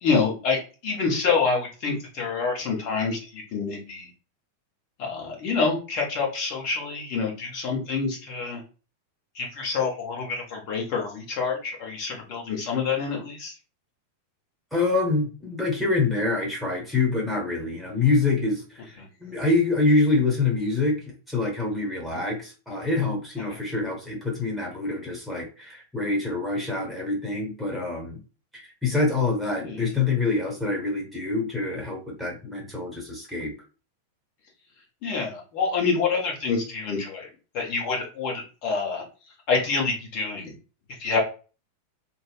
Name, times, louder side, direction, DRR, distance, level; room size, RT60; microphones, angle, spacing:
voice 1, 0.0-0.6 0.8-4.0 5.0-8.6 9.4-13.5 29.6-29.8 35.0-37.3 37.5-39.0 39.5-40.5 41.0-41.2, left 5 dB, 45° left, 0 dB, 0.9 m, -27 dB
voice 2, 14.7-28.2 28.5-33.5, left 3 dB, ahead, -1 dB, 0.8 m, -26 dB
2.7 x 2.0 x 2.3 m, 0.34 s
figure-of-eight pair, 90°, 0 cm